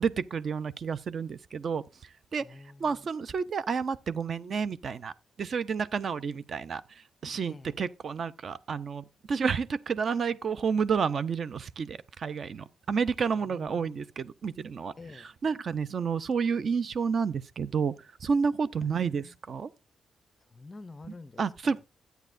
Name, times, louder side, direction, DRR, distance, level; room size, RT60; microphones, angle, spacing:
voice 1, 0.0-1.8 2.3-2.5 2.8-5.1 5.4-6.8 7.2-17.9 18.2-19.7 21.4-21.8, right 6 dB, 40° right, 0.5 m, -30 dB
voice 2, 2.4-3.1 7.5-7.8 13.4-14.1 15.0-15.3 18.8-19.3 20.5-21.8, left 3 dB, 20° left, 0.5 m, -49 dB
13.0 x 9.1 x 2.5 m
wide cardioid pair, 165°, 0 cm